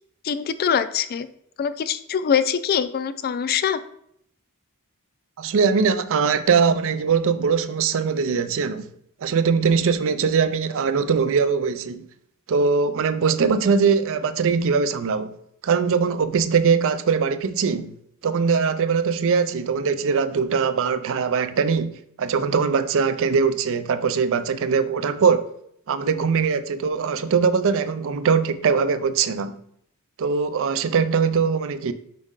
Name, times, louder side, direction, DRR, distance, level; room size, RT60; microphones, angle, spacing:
voice 1, 0.2-1.3 1.6-3.8, left 7 dB, 45° left, 0.3 m, -23 dB
voice 2, 5.4-8.8 9.2-12.0 12.5-15.4 15.6-18.0 18.2-25.5 25.9-29.6 30.2-31.9, right 5 dB, 60° right, 0.4 m, -21 dB
5.3 x 5.1 x 3.6 m
head